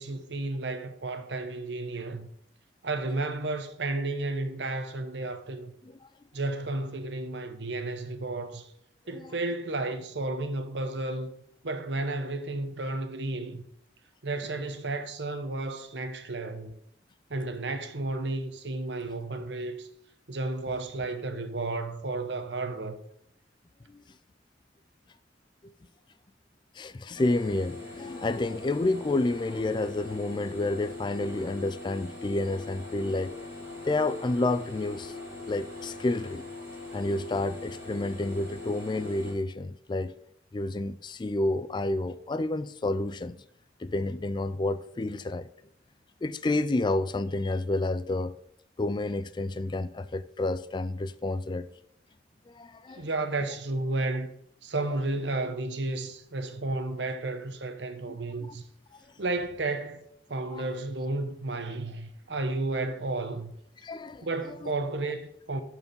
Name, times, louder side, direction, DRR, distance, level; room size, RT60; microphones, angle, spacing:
voice 1, 0.0-2.3 2.8-5.7 6.3-8.7 9.1-11.3 11.6-13.6 14.2-16.7 17.3-19.9 20.3-23.0 52.9-54.3 54.6-58.6 59.2-63.5 64.2-65.6, right 2 dB, 70° right, 1.0 m, -32 dB
voice 2, 26.8-33.5 33.8-35.1 35.4-36.4 36.9-40.1 40.5-43.4 43.8-45.5 46.2-48.4 48.8-51.7 52.5-53.1 58.5-58.6 60.5-60.7 63.8-64.3 64.6-64.7, left 2 dB, 25° left, 0.3 m, -30 dB
sound 1, 27.1-39.3, left 3 dB, 15° right, 4.5 m, -41 dB
12.0 x 4.7 x 5.3 m
head